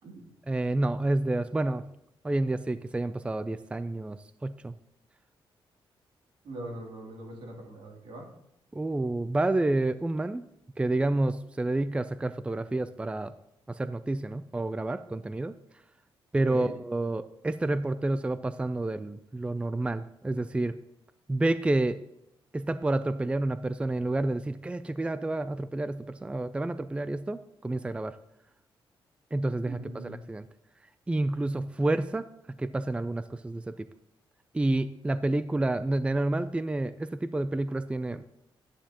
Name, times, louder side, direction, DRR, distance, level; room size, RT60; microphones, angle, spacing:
voice 1, 0.5-1.8 2.2-4.8 8.7-10.4 10.8-13.3 13.7-15.5 16.3-20.8 21.3-22.0 22.5-28.2 29.3-29.8 30.0-30.4 31.1-32.3 32.6-33.9 34.5-38.2, right 2 dB, 10° right, 13 dB, 0.4 m, -29 dB
voice 2, 6.4-8.2 16.3-16.7 29.7-30.2, right 1 dB, 80° right, -1 dB, 2.8 m, -41 dB
11.5 x 9.4 x 2.9 m, 0.79 s
cardioid pair, 90°, 9 cm